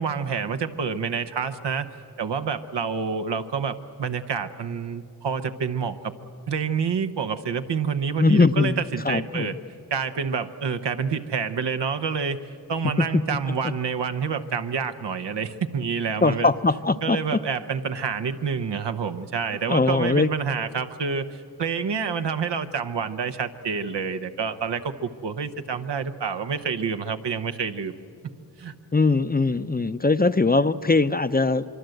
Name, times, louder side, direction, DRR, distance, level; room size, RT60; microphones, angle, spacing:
voice 1, 0.0-1.9 2.2-6.1 6.5-9.6 9.9-16.5 17.0-27.9 28.6-28.7, right 6 dB, 80° right, 8 dB, 1.0 m, -28 dB
voice 2, 8.2-9.5 12.8-13.4 13.6-13.7 16.2-17.4 19.7-20.3 28.9-31.7, left 3 dB, 20° left, 12 dB, 0.6 m, -21 dB
25.0 x 23.5 x 7.9 m, 2.5 s
cardioid pair, 55°, 41 cm